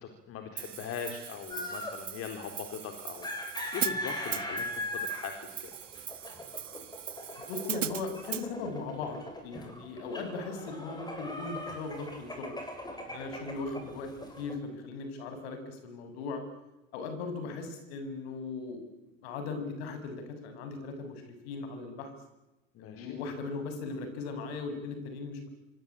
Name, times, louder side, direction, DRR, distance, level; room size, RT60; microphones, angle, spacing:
voice 1, 0.0-3.3 3.7-5.7 22.7-23.2, left 7 dB, 35° left, 5 dB, 4.1 m, -40 dB
Hi-hat, 0.6-8.5, right 9 dB, 75° right, 1.2 m, -39 dB
sound 1, 1.5-2.0 3.1-14.6, left 1 dB, 10° left, 7.8 m, -40 dB
voice 2, 7.5-12.6 13.1-14.1 14.4-16.4 16.9-18.8 19.2-22.1 22.8-25.5, left 3 dB, 55° left, 8 dB, 7.7 m, -38 dB
27.0 x 23.5 x 8.9 m, 0.98 s
figure-of-eight pair, 85°, 37 cm